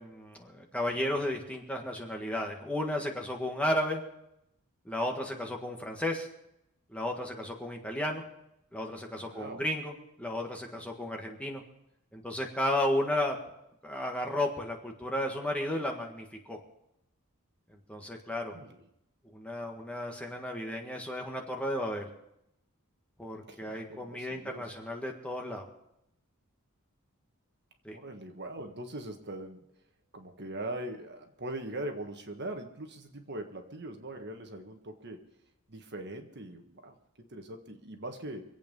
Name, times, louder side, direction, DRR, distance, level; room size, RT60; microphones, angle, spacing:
voice 1, 0.0-4.0 4.8-6.3 6.9-8.2 8.7-11.6 12.1-13.4 13.8-16.6 17.7-18.6 19.3-22.1 23.2-25.6 27.8-28.0, left 1 dB, 5° left, 1 dB, 1.7 m, -33 dB
voice 2, 9.2-9.6 18.5-18.8 23.5-24.6 27.9-29.6 30.1-35.2 35.7-38.4, right 1 dB, 50° right, 5 dB, 1.6 m, -41 dB
25.0 x 8.5 x 5.5 m, 0.82 s
head